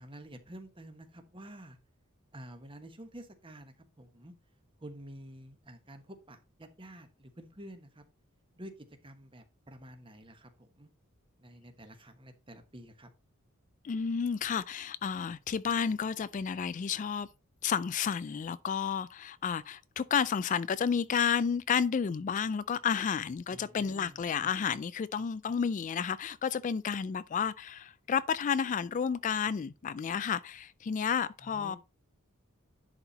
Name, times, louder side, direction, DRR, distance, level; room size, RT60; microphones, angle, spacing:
voice 1, 0.0-1.8 2.3-4.3 4.8-8.0 8.6-10.9 11.4-13.1 23.5-24.5 31.4-31.8, right 1 dB, 25° right, 1.2 m, -50 dB
voice 2, 13.8-17.3 17.6-31.8, left 7 dB, 35° left, 0.3 m, -31 dB
10.5 x 4.3 x 4.1 m
head